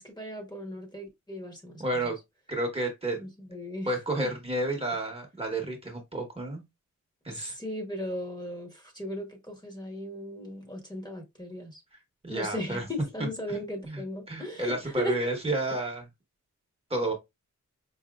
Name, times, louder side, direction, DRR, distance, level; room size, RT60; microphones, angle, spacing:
voice 1, 0.0-2.1 3.2-3.9 4.2-4.3 7.3-11.8 12.3-15.2, left 1 dB, 15° left, 0.9 m, -37 dB
voice 2, 1.8-2.2 2.5-3.2 3.9-6.6 7.2-7.5 12.2-12.8 13.5-13.6 13.8-16.1 16.9-17.1, right 2 dB, 20° right, 0.9 m, -31 dB
4.8 x 2.6 x 2.3 m
wide cardioid pair, 170°, 31 cm